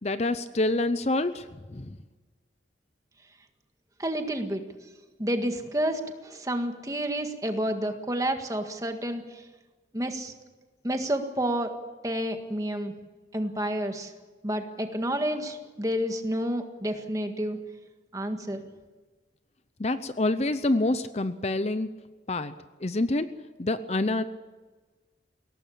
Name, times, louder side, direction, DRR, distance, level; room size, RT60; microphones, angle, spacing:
voice 1, 0.0-2.0 19.8-21.9 22.3-22.5 22.8-23.3 23.6-24.2, left 2 dB, 35° left, 12 dB, 0.7 m, -27 dB
voice 2, 4.0-4.6 5.2-9.2 9.9-10.3 10.8-11.7 12.0-12.9 13.3-14.1 14.4-17.6 18.1-18.7, right 1 dB, 20° right, 5 dB, 1.8 m, -29 dB
22.0 x 18.0 x 8.6 m, 1.3 s
head